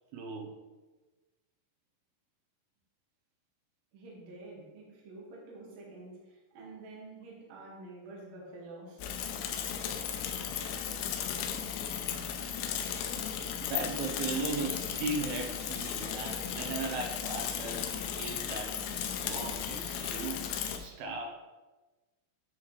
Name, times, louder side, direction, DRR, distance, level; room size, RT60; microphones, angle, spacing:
voice 1, 0.1-0.5 10.6-11.0 11.5-11.8 13.4-18.8 19.2-21.4, right 3 dB, 85° right, 1 dB, 2.2 m, -38 dB
voice 2, 3.9-9.1, right 2 dB, 55° right, -4 dB, 2.0 m, -48 dB
Bicycle / Mechanisms, 9.0-20.8, left 8 dB, 85° left, 2.3 m, -35 dB
9.4 x 4.8 x 3.1 m, 1.2 s
omnidirectional pair, 5.3 m